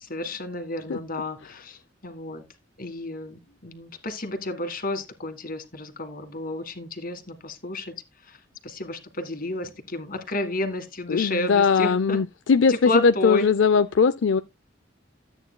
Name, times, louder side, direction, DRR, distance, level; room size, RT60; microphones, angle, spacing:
voice 1, 0.0-2.4 2.8-7.9 8.3-8.4 8.6-12.2 12.7-13.5, left 2 dB, 50° left, 1.7 m, -31 dB
voice 2, 11.1-14.4, left 5 dB, 70° left, 0.5 m, -20 dB
13.5 x 8.8 x 2.2 m
head